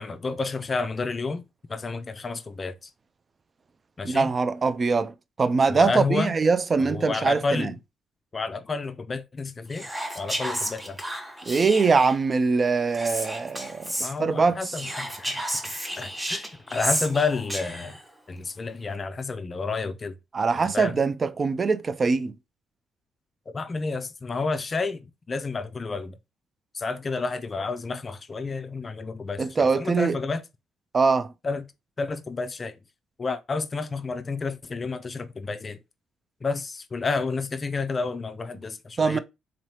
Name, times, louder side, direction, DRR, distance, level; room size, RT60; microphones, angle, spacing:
voice 1, 0.0-1.4 1.7-2.9 4.0-4.3 5.7-6.3 6.8-7.7 8.3-9.9 10.1-11.0 14.0-15.4 16.0-18.0 18.3-20.2 20.7-21.0 23.5-26.2 26.7-30.4 31.4-31.6 32.0-32.8 33.2-35.8 36.4-39.2, left 4 dB, 35° left, 0.4 m, -30 dB
voice 2, 4.0-7.7 11.5-13.9 14.2-14.6 20.3-22.3 29.4-30.2 30.9-31.3 39.0-39.2, right 4 dB, 35° right, 0.3 m, -23 dB
Whispering, 9.7-12.2 12.9-14.1 14.7-18.0, right 1 dB, 10° right, 0.7 m, -32 dB
3.9 x 3.1 x 2.7 m
cardioid pair, 90°, 0 cm